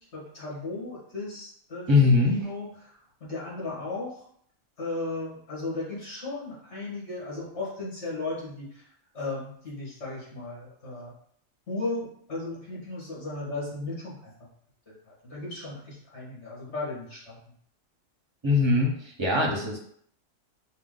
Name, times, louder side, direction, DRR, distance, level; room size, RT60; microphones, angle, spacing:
voice 1, 0.1-2.7 3.2-4.1 4.8-8.7 9.1-11.1 11.7-12.0 12.3-14.2 15.2-17.4 19.3-19.5, left 2 dB, 55° left, -6 dB, 2.0 m, -35 dB
voice 2, 1.9-2.4 18.4-19.8, left 3 dB, 25° right, -1 dB, 0.8 m, -22 dB
5.5 x 2.3 x 3.8 m, 0.65 s
omnidirectional pair, 1.4 m